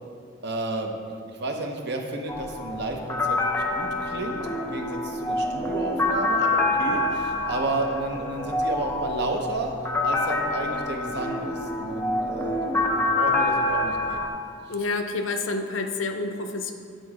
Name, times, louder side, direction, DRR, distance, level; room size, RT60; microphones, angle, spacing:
voice 1, 0.4-9.7 10.0-14.3, right 2 dB, 60° right, 3 dB, 0.8 m, -32 dB
sound 1, 2.3-14.3, left 2 dB, 10° left, 0.6 m, -26 dB
voice 2, 14.7-16.7, left 3 dB, 85° left, 6 dB, 0.6 m, -28 dB
9.1 x 3.8 x 4.9 m, 2.2 s
head